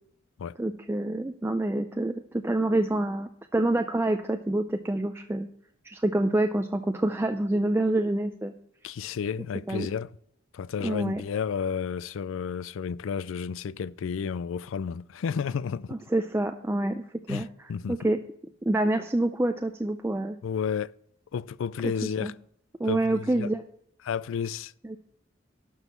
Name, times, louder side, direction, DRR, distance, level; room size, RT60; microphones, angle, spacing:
voice 1, 0.6-5.5 5.8-8.5 9.7-9.9 10.8-11.2 15.9-17.0 17.3-18.2 18.6-20.4 21.8-21.9 22.2-22.3 22.8-23.6 24.8-25.0, right 1 dB, 10° right, 0.4 m, -27 dB
voice 2, 8.8-10.1 10.5-16.0 17.3-18.0 20.4-20.9 21.3-22.3 22.8-23.5 24.0-24.7, left 7 dB, 80° left, 0.4 m, -32 dB
12.0 x 5.5 x 5.6 m
head